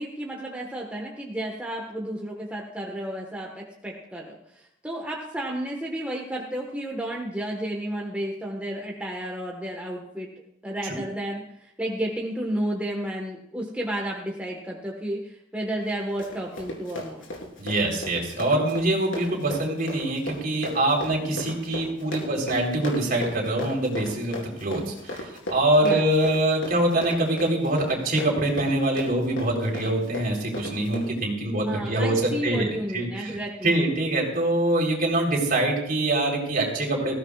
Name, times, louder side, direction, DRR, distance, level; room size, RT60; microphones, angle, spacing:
voice 1, 0.0-10.3 10.6-17.2 25.8-26.1 31.6-33.8, right 1 dB, 5° right, -1 dB, 1.4 m, -32 dB
Run, 15.8-31.1, left 1 dB, 80° left, 3.7 m, -37 dB
voice 2, 17.6-33.4 33.6-37.2, right 1 dB, 45° right, -1 dB, 3.9 m, -24 dB
19.5 x 15.5 x 2.4 m, 0.79 s
head